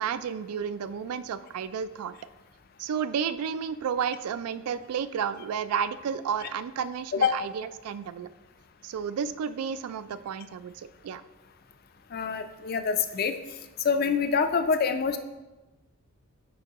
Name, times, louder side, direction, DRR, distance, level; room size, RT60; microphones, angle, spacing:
voice 1, 0.0-2.1 2.8-8.3 8.8-11.2, right 7 dB, 85° right, 14 dB, 0.3 m, -32 dB
voice 2, 12.1-13.4 13.8-15.2, left 5 dB, 40° left, 9 dB, 0.4 m, -25 dB
9.1 x 4.4 x 2.9 m, 1.1 s
head